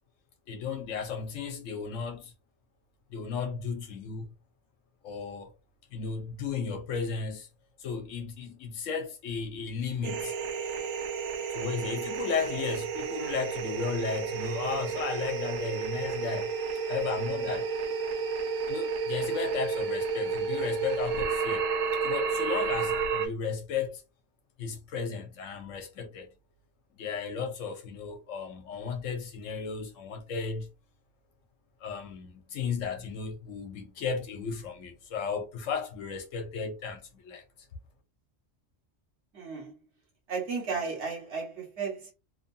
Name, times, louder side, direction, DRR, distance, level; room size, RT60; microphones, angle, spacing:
voice 1, 0.5-2.3 3.1-4.3 5.0-5.5 5.9-7.5 7.8-10.3 11.5-16.5 16.9-17.7 18.7-21.7 22.0-24.0 24.6-26.4 27.0-30.7 31.8-37.4, left 6 dB, 80° left, 1.1 m, -34 dB
sound 1, 10.0-23.3, right 5 dB, 85° right, 1.0 m, -31 dB
voice 2, 39.3-39.7 40.3-42.1, right 5 dB, 60° right, 1.3 m, -34 dB
2.9 x 2.3 x 2.6 m
omnidirectional pair, 1.3 m